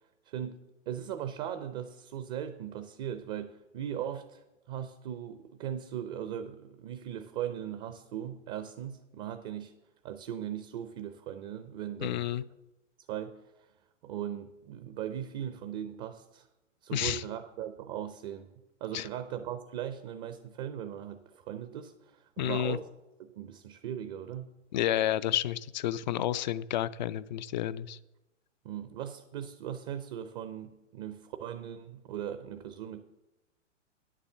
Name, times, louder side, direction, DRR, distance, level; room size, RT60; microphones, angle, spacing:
voice 1, 0.2-0.6 0.9-9.7 10.0-12.3 13.1-13.7 14.0-16.5 16.8-18.5 18.8-22.9 23.2-24.5 28.6-33.0, right 10 dB, 30° right, 9 dB, 0.7 m, -39 dB
voice 2, 12.0-12.4 16.9-17.2 18.9-19.0 22.4-22.8 24.7-28.0, left 12 dB, 40° left, 17 dB, 0.4 m, -30 dB
10.5 x 7.5 x 6.8 m, 0.98 s
figure-of-eight pair, 110°, 38 cm